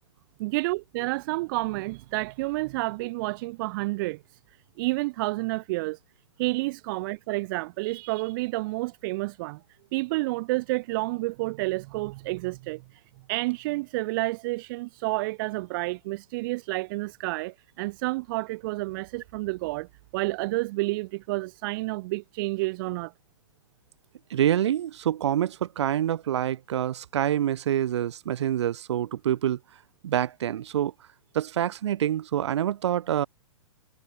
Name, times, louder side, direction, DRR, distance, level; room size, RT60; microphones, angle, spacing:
voice 1, 0.4-4.2 4.8-6.0 6.4-9.6 9.9-13.0 13.3-19.9 20.1-23.1, right 22 dB, 40° right, 1.7 m, -30 dB
voice 2, 24.3-29.6 30.0-30.9 31.3-33.3, right 11 dB, 55° right, 4.5 m, -26 dB
figure-of-eight pair, 115°, 17 cm